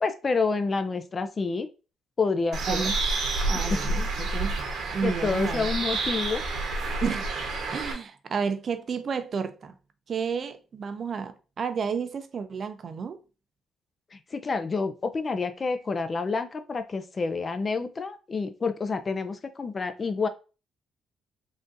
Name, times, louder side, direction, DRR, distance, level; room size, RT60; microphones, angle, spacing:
voice 1, 0.0-1.7 2.2-2.9 3.5-3.8 5.0-6.4 14.1-20.3, left 4 dB, 35° left, 0.4 m, -28 dB
Bird, 2.5-7.9, right 2 dB, 70° right, 0.9 m, -29 dB
voice 2, 3.5-4.6 4.9-5.7 7.0-7.3 7.7-9.7 10.1-13.2, right 6 dB, 50° right, 0.4 m, -31 dB
3.7 x 2.5 x 2.5 m
cardioid pair, 90°, 0 cm